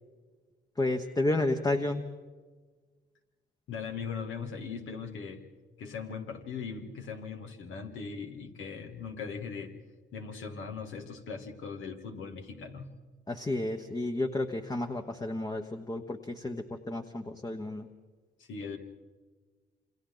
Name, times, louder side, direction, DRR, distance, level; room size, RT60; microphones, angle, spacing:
voice 1, 0.8-2.0 13.3-17.9, left 2 dB, 20° left, 5 dB, 1.1 m, -31 dB
voice 2, 3.7-5.4 5.8-9.7 10.1-12.9 18.4-18.8, left 5 dB, 80° left, 4 dB, 2.5 m, -39 dB
28.5 x 25.5 x 4.0 m, 1.4 s
cardioid pair, 90°, 20 cm